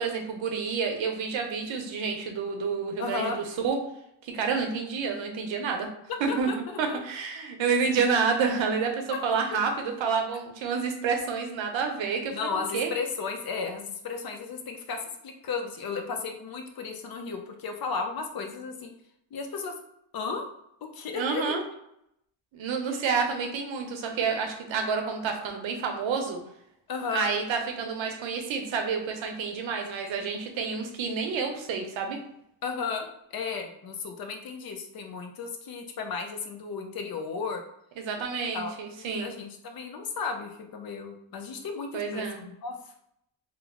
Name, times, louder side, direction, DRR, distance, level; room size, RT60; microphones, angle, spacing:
voice 1, 0.0-3.8 4.2-5.9 6.2-6.5 6.8-12.4 12.7-12.9 21.1-21.6 22.5-26.4 27.1-32.2 38.0-39.3 41.9-42.4, right 5 dB, 80° right, 4 dB, 0.8 m, -29 dB
voice 2, 3.0-3.4 6.1-7.0 9.1-9.2 12.3-18.9 19.3-19.7 20.1-20.5 20.9-21.4 22.9-23.0 26.9-27.3 32.6-37.6 38.5-42.8, left 5 dB, 55° left, 4 dB, 0.6 m, -34 dB
3.0 x 2.0 x 3.6 m, 0.77 s
cardioid pair, 115°, 46 cm